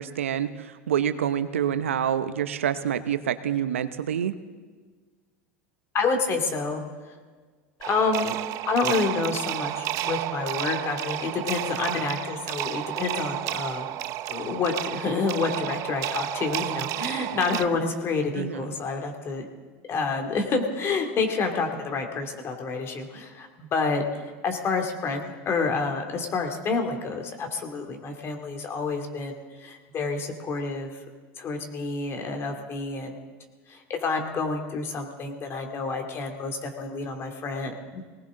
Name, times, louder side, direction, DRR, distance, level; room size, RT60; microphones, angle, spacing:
voice 1, 0.0-4.3 18.4-18.6, right 9 dB, 90° right, 12 dB, 0.8 m, -27 dB
voice 2, 5.9-6.8 7.8-8.4 8.7-13.9 14.3-19.5 19.9-30.9 31.4-33.2 33.7-38.0, left 4 dB, 40° left, 4 dB, 2.5 m, -28 dB
sound 1, 7.8-17.6, right 15 dB, 50° right, 0.5 m, -31 dB
20.0 x 18.5 x 3.8 m, 1.5 s
hypercardioid pair, 95°, 7 cm